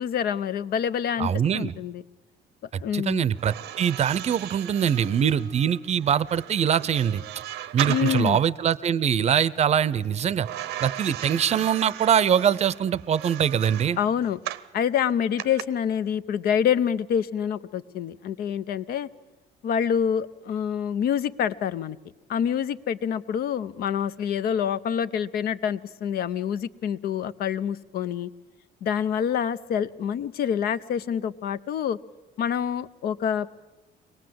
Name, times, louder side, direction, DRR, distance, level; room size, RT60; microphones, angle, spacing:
voice 1, 0.0-2.0 2.8-3.2 7.9-8.4 14.0-14.4 14.7-19.1 19.6-22.0 22.3-28.3 28.8-32.0 32.4-33.6, left 8 dB, 65° left, 14 dB, 0.8 m, -26 dB
voice 2, 1.2-1.7 2.9-7.2 7.7-10.5 10.8-14.0, right 8 dB, 40° right, 19 dB, 0.6 m, -23 dB
sound 1, 3.3-8.5 10.4-14.7 15.4-15.6, right 13 dB, 85° right, 0.8 m, -36 dB
23.5 x 18.5 x 7.8 m, 1.2 s
cardioid pair, 110°, 17 cm